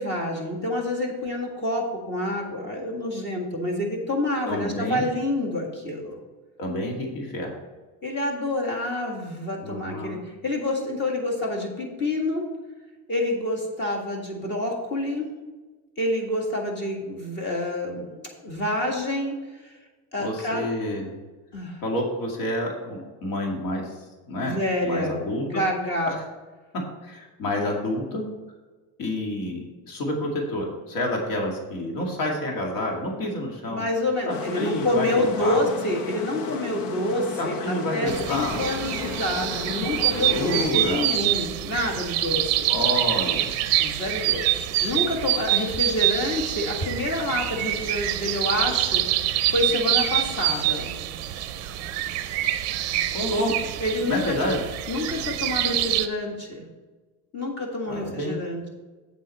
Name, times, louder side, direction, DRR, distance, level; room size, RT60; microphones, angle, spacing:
voice 1, 0.0-6.2 8.0-12.4 13.1-15.3 16.0-19.7 20.1-20.7 21.5-21.8 24.4-25.2 25.5-26.1 33.7-42.7 43.8-50.9 53.4-53.5 53.8-54.4 54.9-56.7 57.3-58.7, left 1 dB, 25° left, 0 dB, 1.7 m, -28 dB
voice 2, 4.5-5.1 6.6-7.5 9.6-10.2 20.2-21.1 21.8-24.6 24.8-25.6 26.0-26.2 27.0-28.2 29.0-33.8 34.3-35.6 37.4-38.6 40.1-41.1 42.7-43.5 53.1-53.5 54.0-54.6 57.9-58.4, left 1 dB, 60° left, 0 dB, 2.2 m, -29 dB
sound 1, 34.3-40.7, left 5 dB, 90° left, 1.0 m, -34 dB
sound 2, 38.1-56.1, right 13 dB, 40° right, 0.6 m, -26 dB
8.2 x 7.6 x 4.2 m, 1.3 s
cardioid pair, 165°, 40 cm